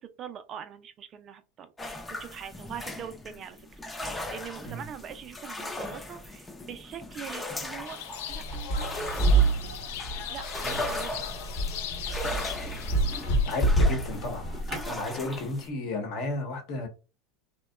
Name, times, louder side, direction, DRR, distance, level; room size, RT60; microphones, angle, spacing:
voice 1, 0.0-3.8 4.3-8.0 8.3-9.5 10.3-11.1 14.7-15.1, right 8 dB, 40° right, 0.4 m, -43 dB
sound 1, 1.8-15.7, left 1 dB, 15° left, 0.5 m, -38 dB
sound 2, 7.9-13.6, left 9 dB, 75° left, 0.4 m, -39 dB
sound 3, 8.3-14.9, right 2 dB, 35° left, 0.9 m, -27 dB
voice 2, 13.5-14.5 14.9-16.9, left 2 dB, 60° left, 1.0 m, -33 dB
2.7 x 2.2 x 2.2 m
hypercardioid pair, 100°, 0 cm